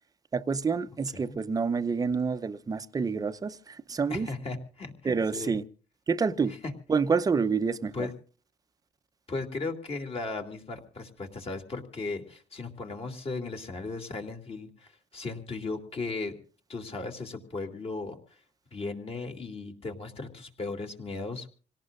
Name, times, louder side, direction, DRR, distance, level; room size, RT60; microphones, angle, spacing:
voice 1, 0.3-4.3 5.0-5.6 6.1-6.5 6.9-8.1, right 5 dB, 20° right, 0.7 m, -28 dB
voice 2, 4.1-5.6 6.5-6.6 7.9-8.1 9.3-16.4 16.7-18.2 18.7-21.5, left 3 dB, 35° left, 2.6 m, -36 dB
27.0 x 18.0 x 2.5 m
cardioid pair, 110°, 17 cm